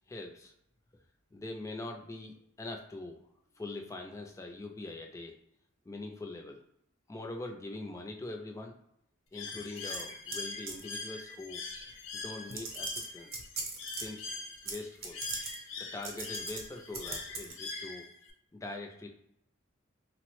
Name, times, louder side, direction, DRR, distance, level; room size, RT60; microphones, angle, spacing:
voice 1, 0.1-0.5 1.3-3.2 3.6-5.3 5.9-6.6 7.1-8.7 9.3-11.6 12.1-13.3 14.0-14.3 14.6-15.2 15.8-18.0 18.5-19.1, left 2 dB, 15° left, 2 dB, 0.3 m, -42 dB
Bird, 9.3-18.3, left 3 dB, 65° left, 0.5 m, -42 dB
sound 1, 9.9-10.4 10.7-10.9 11.9-12.0 12.5-14.0 14.7-14.8 15.0-15.6 16.0-16.6 16.9-17.5, right 4 dB, 45° right, 0.6 m, -39 dB
3.1 x 2.0 x 3.0 m, 0.75 s
head